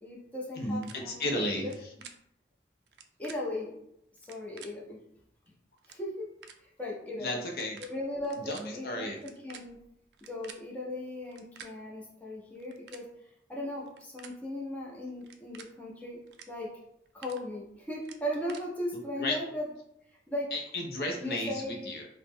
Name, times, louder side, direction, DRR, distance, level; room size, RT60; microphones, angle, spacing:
voice 1, 0.0-1.3 1.6-1.7 3.2-3.8 4.2-5.0 5.9-6.3 6.6-7.3 7.8-9.8 10.2-13.1 13.5-16.2 16.5-16.7 17.1-19.7 20.3-20.5 21.2-21.9, left 1 dB, 10° left, -4 dB, 0.5 m, -37 dB
voice 2, 0.5-1.9 7.2-7.8 8.5-9.2 19.2-19.4 20.5-22.1, left 1 dB, 55° left, 1 dB, 0.5 m, -33 dB
sound 1, 0.8-0.9 1.6-2.1 2.9-3.4 4.2-4.7 5.5-5.6 5.8-6.0 6.4-6.6 7.5-7.9 8.2-8.6 9.2-10.6 11.3-11.7 12.6-13.0 13.8-14.3 15.2-15.7 16.3-16.5 16.8-17.4 18.0-18.6, right 7 dB, 75° right, 0.3 m, -49 dB
2.9 x 2.0 x 3.5 m, 0.77 s
head